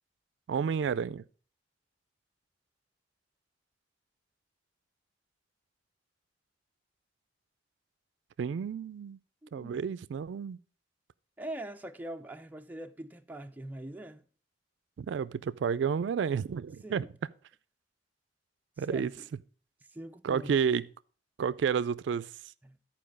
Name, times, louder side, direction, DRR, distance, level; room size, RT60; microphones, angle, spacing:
voice 1, 0.5-1.2 8.4-9.2 9.5-10.6 15.0-17.1 18.8-19.1 20.2-20.8 21.4-22.3, right 7 dB, 75° right, 0.3 m, -30 dB
voice 2, 9.4-9.8 11.4-14.2 16.8-17.1 18.8-19.3 19.9-20.6 22.6-22.8, right 1 dB, 10° right, 0.4 m, -43 dB
10.5 x 4.7 x 5.0 m
head